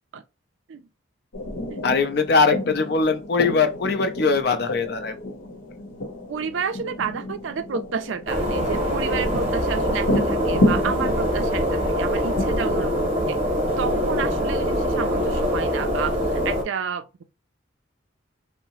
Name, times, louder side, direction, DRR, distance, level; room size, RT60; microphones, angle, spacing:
sound 1, 1.3-14.4, left 1 dB, 90° left, 0.8 m, -30 dB
voice 1, 1.8-5.3, left 4 dB, 55° left, 0.4 m, -21 dB
voice 2, 6.3-13.4 13.8-17.2, right 6 dB, 70° right, 0.3 m, -31 dB
sound 2, 8.3-16.6, equal, 30° right, 0.8 m, -24 dB
2.7 x 2.0 x 2.9 m
head